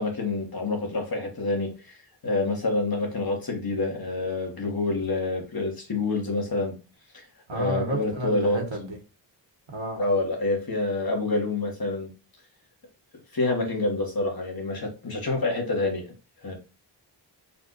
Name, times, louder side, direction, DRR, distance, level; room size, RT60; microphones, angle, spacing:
voice 1, 0.0-2.0 2.2-6.7 7.1-7.3 7.5-8.6 10.0-12.1 13.3-16.1 16.4-16.6, left 2 dB, 50° left, 1 dB, 1.5 m, -27 dB
voice 2, 7.5-9.0 9.7-10.0, right 2 dB, 80° right, 1 dB, 1.6 m, -31 dB
4.2 x 2.6 x 3.9 m, 0.31 s
wide cardioid pair, 100°, 46 cm